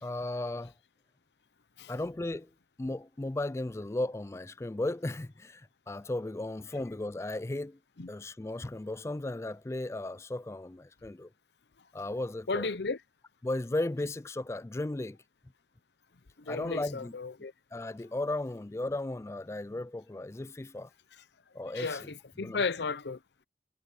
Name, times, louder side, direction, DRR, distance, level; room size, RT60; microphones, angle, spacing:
voice 1, 0.0-0.7 1.9-2.5 2.8-7.8 8.1-11.3 11.9-12.7 13.4-15.2 16.5-17.1 17.7-20.9 21.5-22.1 22.4-22.6, left 2 dB, 15° left, 0.3 m, -35 dB
voice 2, 12.5-13.0 16.4-17.5 21.7-23.2, left 4 dB, 75° left, 0.8 m, -34 dB
head